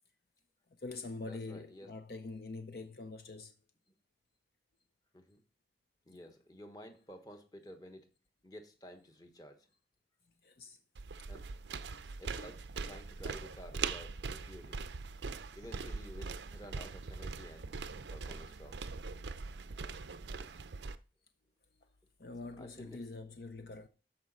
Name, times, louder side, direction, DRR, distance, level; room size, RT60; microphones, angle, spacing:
voice 1, 0.7-3.5 10.4-10.8 12.1-12.2 22.2-23.9, left 3 dB, 60° left, 0.6 m, -45 dB
voice 2, 1.3-1.9 5.1-5.4 6.1-8.1 8.4-9.7 11.3-11.5 12.2-14.8 15.5-17.7 18.1-18.9 22.6-23.0, equal, 20° left, 1.1 m, -52 dB
sound 1, 11.0-21.0, right 4 dB, 85° right, 0.5 m, -42 dB
12.5 x 4.9 x 4.0 m
head